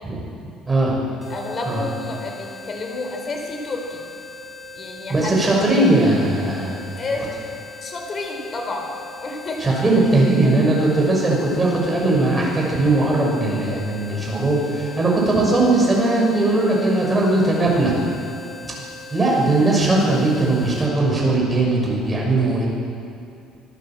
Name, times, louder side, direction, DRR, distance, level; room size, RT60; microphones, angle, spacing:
voice 1, 0.7-1.0 1.7-1.8 5.1-6.9 9.6-17.9 19.1-22.7, right 2 dB, 15° right, -3 dB, 6.2 m, -19 dB
sound 1, 1.2-20.9, left 2 dB, 15° left, 3.6 m, -39 dB
voice 2, 1.3-4.0 4.7-5.5 7.0-7.3 7.8-8.9 9.2-9.6, left 2 dB, 30° left, 2 dB, 4.1 m, -30 dB
25.5 x 14.5 x 7.6 m, 2.5 s
cardioid pair, 160°, 0 cm